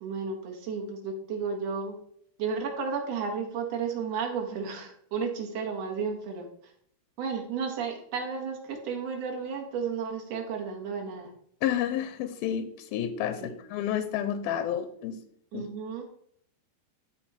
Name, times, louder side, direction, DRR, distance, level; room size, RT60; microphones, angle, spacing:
voice 1, 0.0-2.0 2.4-6.5 7.2-11.3 13.4-13.5 15.5-16.0, right 5 dB, 55° right, 2 dB, 2.2 m, -33 dB
voice 2, 11.6-15.2 15.5-15.7, left 10 dB, 85° left, 10 dB, 2.3 m, -30 dB
13.0 x 4.4 x 4.3 m, 0.66 s
omnidirectional pair, 4.8 m